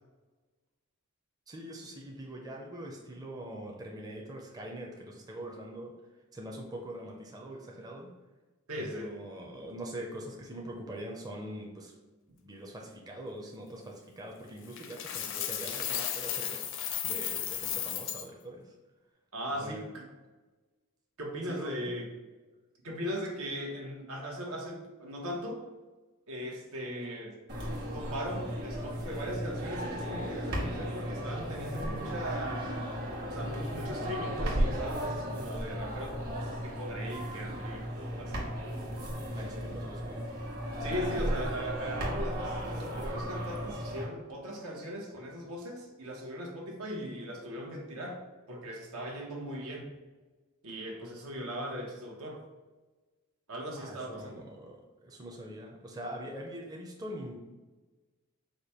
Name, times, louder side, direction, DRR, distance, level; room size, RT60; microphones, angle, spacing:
voice 1, 1.5-5.9 6.3-8.1 8.8-11.9 12.3-18.7 19.6-19.9 21.5-21.9 39.3-40.3 53.8-57.4, right 1 dB, 15° right, 0 dB, 0.5 m, -43 dB
voice 2, 8.7-9.1 19.3-20.1 21.2-22.1 22.8-25.6 26.3-27.3 27.9-32.7 33.3-38.5 40.8-48.2 48.5-49.9 50.6-52.4 53.5-54.5, equal, 85° right, -1 dB, 1.1 m, -39 dB
Coin (dropping), 14.8-18.3, left 9 dB, 60° left, 0.5 m, -34 dB
sound 1, 27.5-44.0, equal, 45° right, 1.3 m, -35 dB
5.0 x 2.2 x 4.2 m, 1.2 s
head